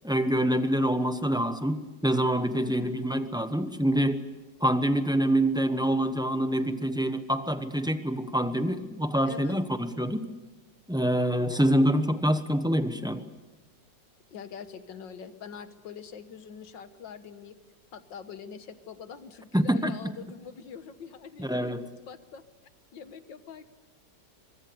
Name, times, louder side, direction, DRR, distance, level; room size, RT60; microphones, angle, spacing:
voice 1, 0.0-4.2 4.6-10.2 10.9-13.3 19.5-19.9 21.4-21.9, equal, 5° right, 9 dB, 0.7 m, -26 dB
voice 2, 2.6-2.9 9.2-9.6 14.3-17.6 17.9-22.4 22.9-23.7, left 7 dB, 80° left, 10 dB, 2.0 m, -44 dB
24.5 x 22.5 x 6.9 m, 1.2 s
omnidirectional pair, 1.9 m